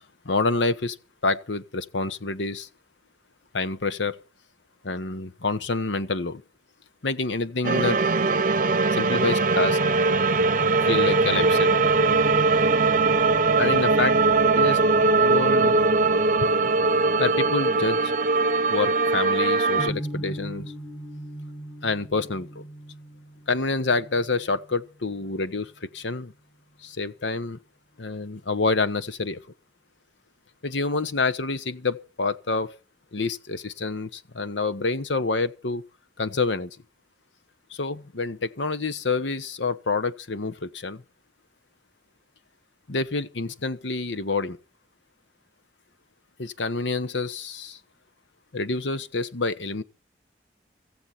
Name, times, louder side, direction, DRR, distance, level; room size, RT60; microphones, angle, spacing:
voice 1, 0.2-1.0 1.2-2.7 3.5-4.2 4.8-6.4 7.0-8.0 8.9-9.8 10.8-11.8 13.6-14.3 14.5-14.8 15.2-15.8 16.4-16.5 17.2-18.1 18.7-20.7 21.8-22.6 23.5-26.3 26.8-27.6 28.0-29.4 30.6-32.7 33.1-35.8 36.2-36.7 37.7-41.0 42.9-44.6 46.4-47.8 48.5-49.8, left 3 dB, 90° left, 1.1 m, -27 dB
sound 1, 7.6-19.9, right 3 dB, 45° right, 0.8 m, -21 dB
sound 2, 19.8-25.9, right 1 dB, 10° left, 1.5 m, -39 dB
16.5 x 15.0 x 4.4 m
head